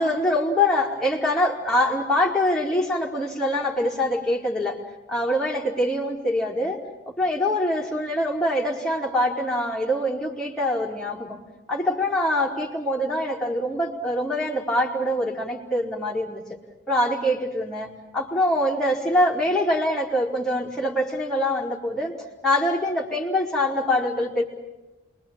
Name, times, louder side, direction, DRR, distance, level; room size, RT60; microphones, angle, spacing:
voice 1, 0.0-4.7 5.1-6.8 7.2-11.4 11.7-16.4 16.9-17.9 18.1-22.1 22.4-24.4, left 1 dB, ahead, -4 dB, 4.5 m, -24 dB
28.0 x 23.0 x 8.9 m, 1.1 s
head